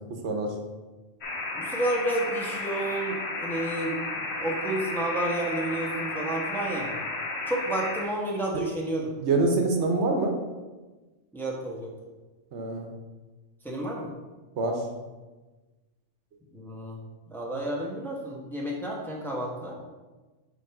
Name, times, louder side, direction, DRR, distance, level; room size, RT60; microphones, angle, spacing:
voice 1, 0.1-0.5 9.2-10.4 12.5-12.9 14.6-14.8, right 3 dB, 70° right, 3 dB, 1.1 m, -25 dB
sound 1, 1.2-8.0, left 2 dB, 65° left, 1.3 m, -33 dB
voice 2, 1.5-6.9 7.5-9.1 11.3-11.9 13.6-14.1 16.5-17.0 17.3-19.7, right 1 dB, ahead, -3 dB, 0.9 m, -31 dB
6.3 x 3.9 x 4.7 m, 1.2 s
omnidirectional pair, 1.2 m